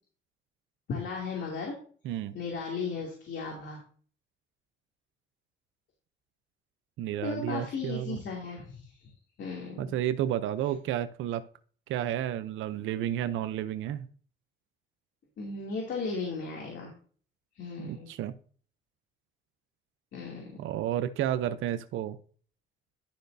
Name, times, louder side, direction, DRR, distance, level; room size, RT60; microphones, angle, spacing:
voice 1, 0.9-1.7 2.3-3.8 7.2-9.1 9.4-9.9 15.4-16.9 17.5-18.1 20.1-20.6, left 4 dB, 65° left, -1 dB, 2.6 m, -36 dB
voice 2, 2.0-2.4 7.0-8.2 9.8-11.4 11.9-14.1 17.8-18.3 20.6-22.2, right 11 dB, 85° right, 12 dB, 0.6 m, -31 dB
11.5 x 6.5 x 2.6 m, 0.43 s
cardioid pair, 90°, 20 cm